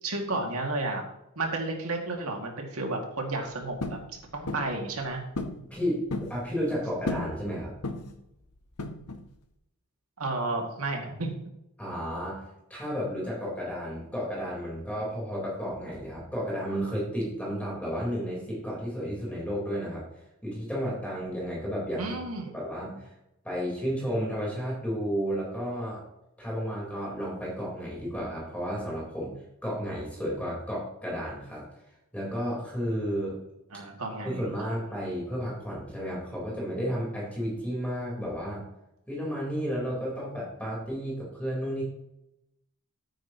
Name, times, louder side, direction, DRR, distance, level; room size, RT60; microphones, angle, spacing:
voice 1, 0.0-1.0 1.4-4.0 4.3-5.2 10.2-11.3 22.0-22.5 33.7-34.5, right 2 dB, 75° right, 1 dB, 2.3 m, -32 dB
sound 1, 3.8-4.1 4.5-4.7 5.4-5.6 5.9-6.4 7.1-7.4 7.8-8.2 8.8-9.3, left 2 dB, 90° left, 1.1 m, -33 dB
voice 2, 5.6-7.7 11.8-12.4 12.7-20.0 20.4-22.1 22.5-23.1 23.4-26.0 26.4-29.3 29.6-31.6 32.1-33.4 34.2-38.6 39.1-41.8, equal, 5° left, -5 dB, 4.2 m, -32 dB
13.5 x 9.3 x 3.0 m, 0.88 s
head